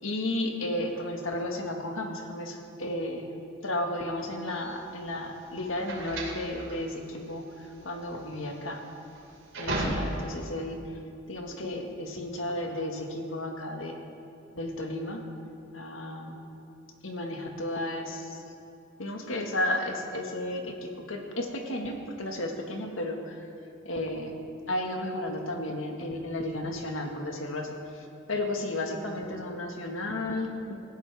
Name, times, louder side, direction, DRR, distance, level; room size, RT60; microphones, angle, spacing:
voice 1, 0.0-3.3 3.6-8.8 9.6-10.8 11.3-14.0 14.5-15.2 15.7-16.5 17.0-18.4 19.0-23.5 23.8-24.4 24.7-30.7, left 1 dB, 85° left, 2 dB, 1.8 m, -33 dB
sound 1, 4.5-10.5, right 1 dB, 75° right, 3.1 m, -35 dB
18.5 x 15.5 x 3.6 m, 2.6 s
head